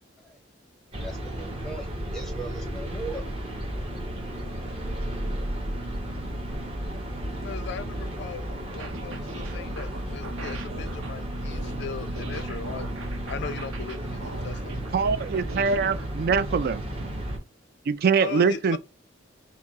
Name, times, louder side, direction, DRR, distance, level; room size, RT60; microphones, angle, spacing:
sound 1, 0.9-17.4, right 1 dB, 30° right, 0.9 m, -33 dB
voice 1, 1.0-3.3, right 2 dB, ahead, 0.7 m, -39 dB
voice 2, 7.4-12.9 13.3-14.8 18.2-18.8, left 6 dB, 55° left, 0.3 m, -38 dB
sound 2, 8.7-16.1, right 2 dB, 85° right, 0.7 m, -41 dB
voice 3, 14.9-16.8 17.9-18.8, right 5 dB, 50° right, 0.3 m, -23 dB
4.5 x 2.0 x 3.5 m
head